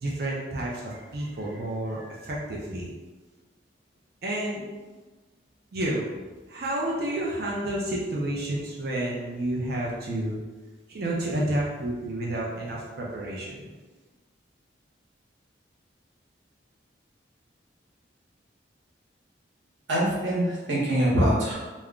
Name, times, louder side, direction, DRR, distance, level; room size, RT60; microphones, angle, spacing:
voice 1, 0.0-2.9 4.2-4.7 5.7-6.0 6.5-10.4 10.9-13.7, right 1 dB, 55° right, -4 dB, 0.5 m, -30 dB
voice 2, 19.9-21.5, equal, 90° right, -5 dB, 0.9 m, -23 dB
2.3 x 2.1 x 3.6 m, 1.3 s
head